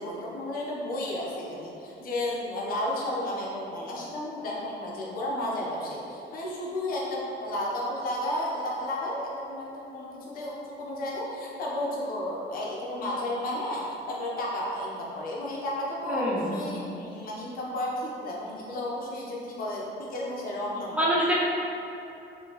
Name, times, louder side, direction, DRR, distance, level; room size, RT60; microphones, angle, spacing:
voice 1, 0.0-21.1, left 1 dB, 50° left, -4 dB, 0.7 m, -33 dB
voice 2, 16.1-16.4 16.7-16.8 21.0-21.5, equal, 5° right, -7 dB, 0.4 m, -25 dB
4.5 x 2.9 x 2.9 m, 2.8 s
cardioid pair, 170°, 18 cm